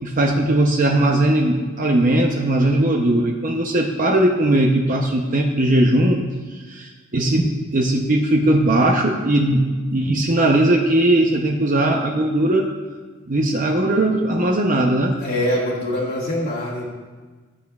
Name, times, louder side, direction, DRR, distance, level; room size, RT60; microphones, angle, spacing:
voice 1, 0.0-6.2 6.5-12.7 13.3-15.2, right 1 dB, 40° right, 2 dB, 0.7 m, -19 dB
voice 2, 15.2-16.9, left 1 dB, 50° left, -9 dB, 1.6 m, -23 dB
15.0 x 9.1 x 2.4 m, 1.4 s
head